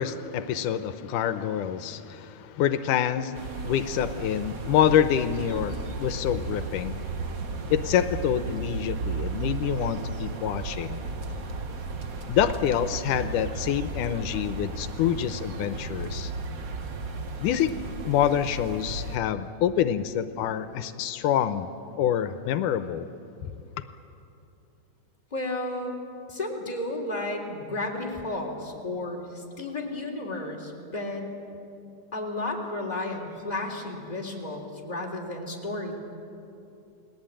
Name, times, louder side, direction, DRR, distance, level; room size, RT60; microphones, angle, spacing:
voice 1, 0.0-7.1 7.7-11.0 12.3-16.3 17.4-17.7 18.1-21.7 22.0-23.1, left 9 dB, 85° left, 10 dB, 2.3 m, -26 dB
sound 1, 3.3-19.2, right 3 dB, 65° right, 0.8 m, -34 dB
voice 2, 25.3-26.0 26.3-31.3 32.1-36.0, left 2 dB, 15° left, 0 dB, 3.2 m, -33 dB
30.0 x 20.0 x 8.9 m, 2.7 s
omnidirectional pair, 3.6 m